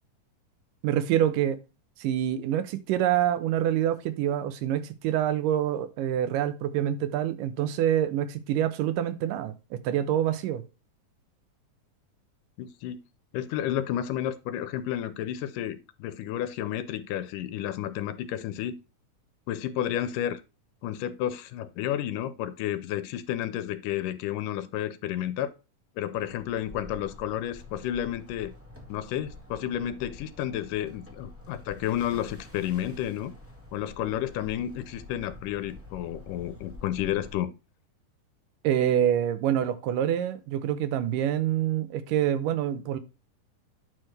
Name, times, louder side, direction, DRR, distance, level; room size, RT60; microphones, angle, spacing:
voice 1, 0.8-1.6 2.0-10.6 38.6-43.0, right 11 dB, 85° right, 2.4 m, -26 dB
voice 2, 12.6-13.0 13.3-18.8 19.5-20.4 20.8-25.5 26.0-28.5 28.9-33.3 33.7-37.5, left 11 dB, 80° left, 2.3 m, -31 dB
sound 1, 26.1-37.3, left 2 dB, 10° right, 0.9 m, -47 dB
9.1 x 6.1 x 3.3 m
omnidirectional pair, 3.8 m